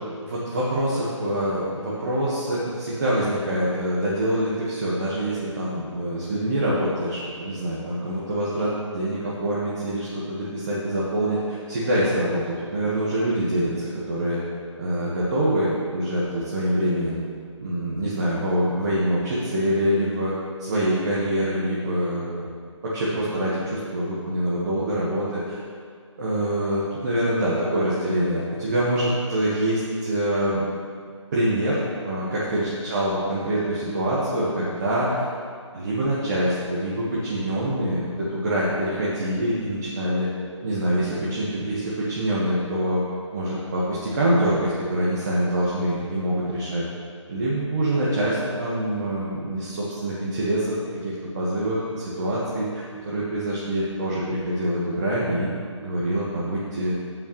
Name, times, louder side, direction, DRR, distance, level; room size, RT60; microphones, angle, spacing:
voice 1, 0.1-12.4 12.7-14.4 14.8-17.2 17.6-20.3 20.6-22.5 22.8-25.6 26.2-30.6 31.3-31.8 32.0-35.3 35.7-40.3 40.6-43.0 43.3-46.8 47.3-50.8 51.0-55.5 55.8-56.9, right 1 dB, 35° right, -7 dB, 1.5 m, -25 dB
15.0 x 5.8 x 3.2 m, 2.2 s
figure-of-eight pair, 145°, 16 cm